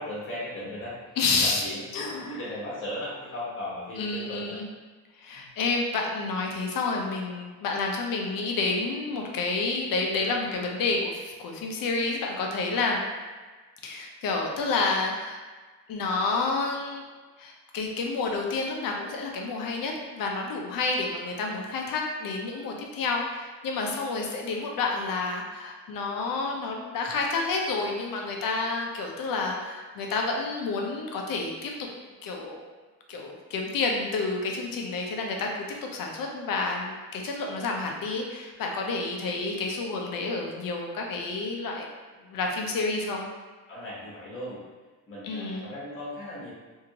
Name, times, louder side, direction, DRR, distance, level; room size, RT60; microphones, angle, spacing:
voice 1, 0.0-1.0 1.4-4.6 5.3-5.5 43.7-44.6 45.1-46.5, left 1 dB, 35° left, -7 dB, 1.2 m, -37 dB
voice 2, 1.2-1.6 1.9-2.4 4.0-4.6 5.2-13.0 13.8-15.4 15.9-17.1 17.4-31.9 32.2-32.7 33.1-41.9 42.2-43.2 45.2-45.7, left 3 dB, 65° left, 1 dB, 0.6 m, -29 dB
2.8 x 2.5 x 2.8 m, 1.4 s
cardioid pair, 100°, 37 cm